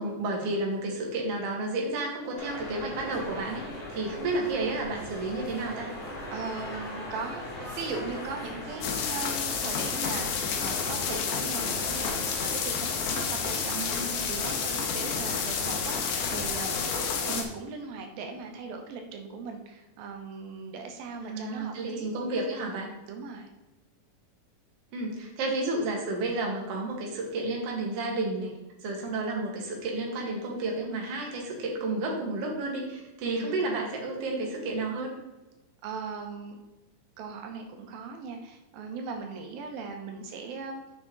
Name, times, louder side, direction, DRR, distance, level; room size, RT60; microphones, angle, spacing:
voice 1, 0.0-3.6 3.9-5.9 13.7-14.3 21.3-22.9 24.9-28.5 28.8-35.1, right 2 dB, 50° right, -1 dB, 2.3 m, -31 dB
sound 1, 2.4-17.4, left 1 dB, 50° left, 3.9 m, -39 dB
voice 2, 6.3-22.1 23.1-23.5 33.2-33.6 35.8-36.6 37.2-40.8, right 4 dB, 85° right, 3 dB, 2.8 m, -39 dB
sound 2, 8.8-17.4, left 6 dB, 80° left, 2.7 m, -30 dB
7.0 x 6.2 x 3.9 m, 1.1 s
omnidirectional pair, 4.0 m